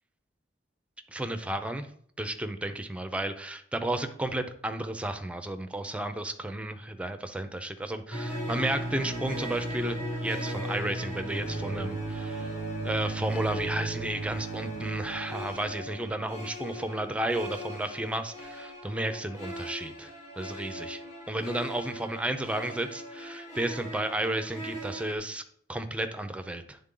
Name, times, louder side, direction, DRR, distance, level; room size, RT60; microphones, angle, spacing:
voice 1, 1.1-1.9 2.2-12.5 12.8-20.1 20.4-21.0 21.3-25.4 25.7-26.8, right 1 dB, 5° right, 8 dB, 0.5 m, -33 dB
sound 1, 8.1-25.1, right 1 dB, 40° left, 1.8 m, -37 dB
10.0 x 3.8 x 3.7 m, 0.62 s
head